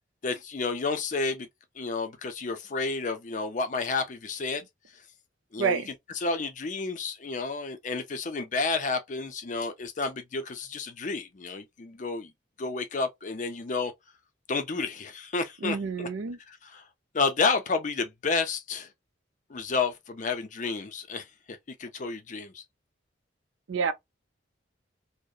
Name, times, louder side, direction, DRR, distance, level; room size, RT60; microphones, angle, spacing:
voice 1, 0.2-1.5 1.8-4.6 5.5-5.8 6.2-12.3 12.6-13.9 14.5-16.1 16.5-16.8 17.1-18.9 19.5-22.6, left 4 dB, 40° left, 0.4 m, -31 dB
voice 2, 15.6-16.4 23.7-23.9, right 6 dB, 90° right, 0.4 m, -28 dB
2.7 x 2.0 x 2.3 m
head